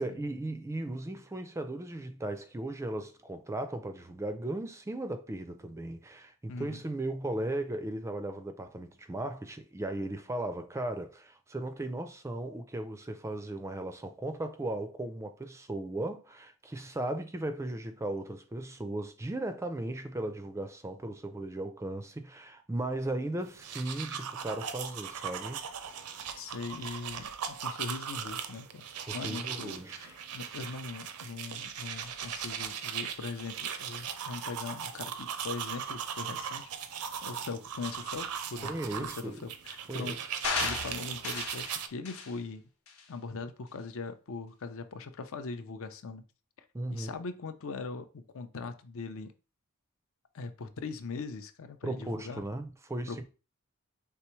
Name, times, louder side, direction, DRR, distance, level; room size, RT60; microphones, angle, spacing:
voice 1, 0.0-25.6 29.1-30.1 38.6-39.4 39.9-40.2 46.7-47.1 51.8-53.2, right 1 dB, 15° right, 0.4 m, -36 dB
voice 2, 6.5-6.8 26.4-36.7 37.0-38.7 39.0-40.2 40.6-42.6 43.1-46.2 46.9-49.3 50.3-52.4 53.1-53.2, left 4 dB, 65° left, 0.5 m, -41 dB
sound 1, 23.5-41.9, right 8 dB, 85° right, 0.5 m, -39 dB
sound 2, 40.4-41.7 42.1-42.3 42.9-43.0, left 4 dB, 85° left, 1.1 m, -34 dB
4.6 x 3.4 x 3.0 m
head